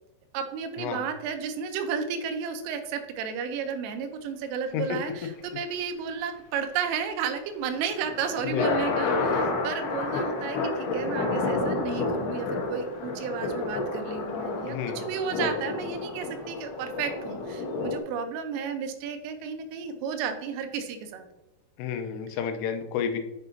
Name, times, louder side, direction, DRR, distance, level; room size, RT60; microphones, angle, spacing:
voice 1, 0.3-21.3, right 6 dB, 85° right, 7 dB, 3.3 m, -33 dB
sound 1, 7.8-18.0, left 3 dB, 70° left, 2.7 m, -30 dB
voice 2, 14.7-15.0 21.8-23.2, left 8 dB, 90° left, 6 dB, 3.2 m, -30 dB
10.5 x 4.6 x 2.7 m, 0.95 s
omnidirectional pair, 5.7 m